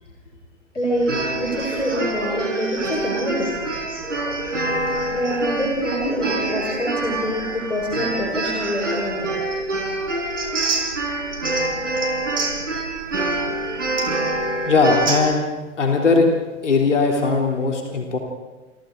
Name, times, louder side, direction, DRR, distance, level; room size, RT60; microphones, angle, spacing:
voice 1, 0.7-3.5 5.1-9.4, equal, 90° left, -2 dB, 5.2 m, -25 dB
sound 1, 1.0-15.2, right 2 dB, 80° right, 5.8 m, -25 dB
voice 2, 14.6-15.4 15.8-16.3 16.6-18.2, left 4 dB, 75° left, 1 dB, 3.5 m, -19 dB
28.5 x 27.5 x 3.9 m, 1.2 s
figure-of-eight pair, 100°, 36 cm